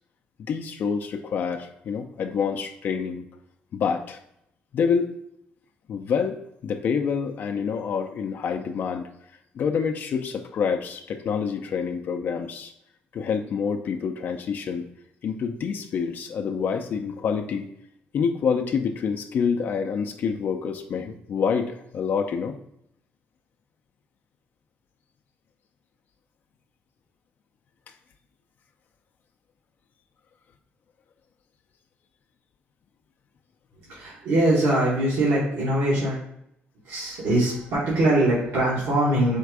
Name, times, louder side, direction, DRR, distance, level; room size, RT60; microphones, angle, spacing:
voice 1, 0.4-3.2 3.7-4.2 4.7-5.1 5.9-6.4 6.6-9.1 9.5-12.7 13.1-14.9 15.2-17.7 18.1-22.6, left 6 dB, 60° left, 5 dB, 0.4 m, -27 dB
voice 2, 33.8-36.2 36.8-39.4, right 1 dB, 85° right, -8 dB, 1.6 m, -22 dB
4.4 x 2.4 x 4.6 m, 0.76 s
cardioid pair, 105°, 4 cm